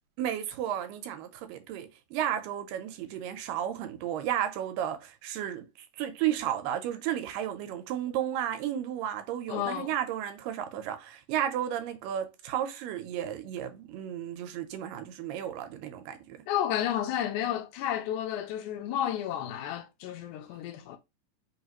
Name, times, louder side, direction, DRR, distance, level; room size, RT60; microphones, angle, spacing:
voice 1, 0.2-5.6 6.0-16.4, right 10 dB, 90° right, 2.3 m, -33 dB
voice 2, 9.5-9.9 16.5-21.0, left 11 dB, 80° left, 1.9 m, -31 dB
5.4 x 2.4 x 2.9 m
omnidirectional pair, 3.9 m